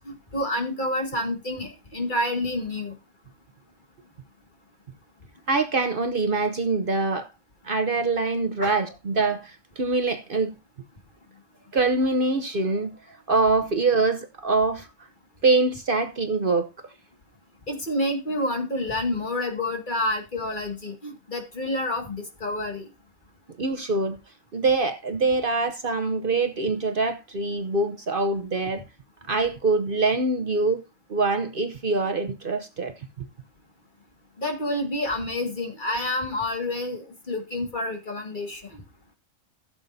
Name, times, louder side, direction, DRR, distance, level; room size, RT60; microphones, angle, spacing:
voice 1, 0.1-2.9 8.6-8.7 17.7-22.8 34.4-38.8, left 1 dB, 40° left, 2.1 m, -28 dB
voice 2, 5.5-7.3 7.6-10.5 11.7-12.9 13.3-14.9 15.4-16.7 23.6-24.2 24.5-28.8 29.3-30.8 31.1-32.9, right 3 dB, 50° right, 0.9 m, -24 dB
16.0 x 7.2 x 2.7 m
omnidirectional pair, 1.3 m